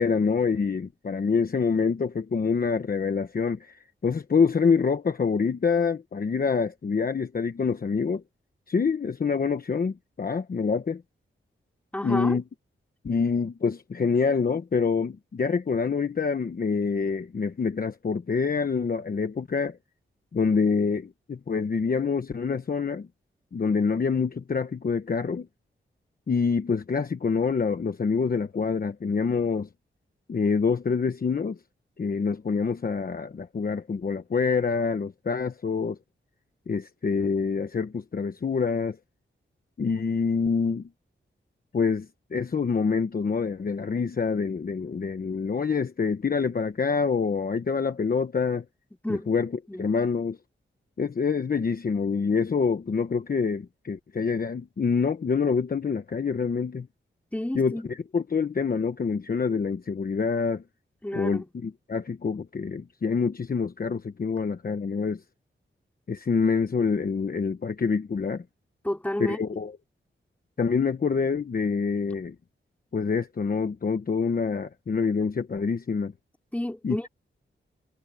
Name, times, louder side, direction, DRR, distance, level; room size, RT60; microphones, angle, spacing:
voice 1, 0.0-8.2 8.7-11.0 12.0-12.4 13.0-19.8 20.3-23.1 23.5-25.5 26.3-29.7 30.3-31.6 32.0-36.0 36.7-39.0 39.8-40.9 41.7-48.6 49.1-49.5 49.8-50.4 51.0-56.9 57.5-60.6 61.1-65.2 66.1-68.4 69.2-69.7 70.6-72.4 72.9-76.1 76.8-77.1, left 5 dB, 45° left, 1.1 m, -26 dB
voice 2, 11.9-12.4 49.0-49.3 49.7-49.9 57.3-57.9 61.0-61.5 68.8-69.4 76.5-77.1, left 1 dB, 5° left, 3.7 m, -30 dB
wide cardioid pair, 165°, 21 cm